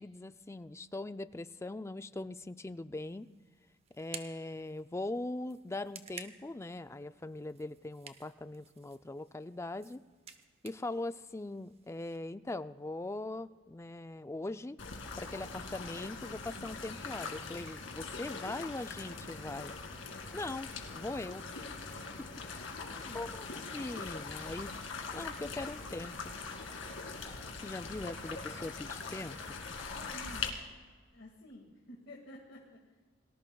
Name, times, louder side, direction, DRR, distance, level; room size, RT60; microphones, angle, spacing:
voice 1, 0.0-3.3 3.9-10.0 10.6-14.8 15.2-19.7 20.3-21.4 22.2-22.5 23.1-23.5 23.7-24.7 25.1-26.3 27.6-29.6, left 2 dB, 15° left, 12 dB, 0.4 m, -41 dB
sound 1, 3.0-12.2, right 6 dB, 30° right, 1.0 m, -54 dB
sound 2, 14.8-30.5, left 4 dB, 85° left, 2.3 m, -42 dB
voice 2, 22.7-23.3 30.1-30.5 31.1-32.9, equal, 65° left, -1 dB, 2.0 m, -51 dB
29.5 x 19.0 x 2.3 m, 1.4 s
head